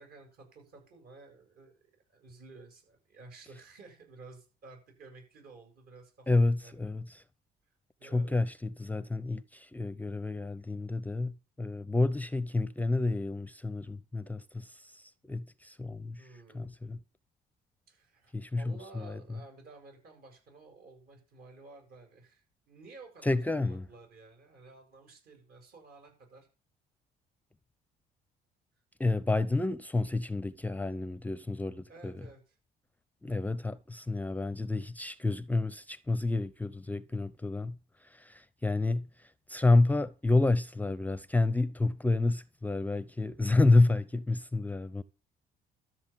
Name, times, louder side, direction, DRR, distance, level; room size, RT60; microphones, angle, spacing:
voice 1, 0.0-6.9 8.0-8.5 16.2-16.7 17.9-26.5 31.9-32.6, right 3 dB, 65° right, 7.5 m, -53 dB
voice 2, 6.3-7.1 8.0-16.2 16.5-17.0 18.3-19.2 23.2-23.8 29.0-32.1 33.2-37.8 38.1-39.1 39.5-45.0, left 2 dB, 10° left, 0.6 m, -29 dB
13.0 x 7.8 x 7.3 m
cardioid pair, 110°, 17 cm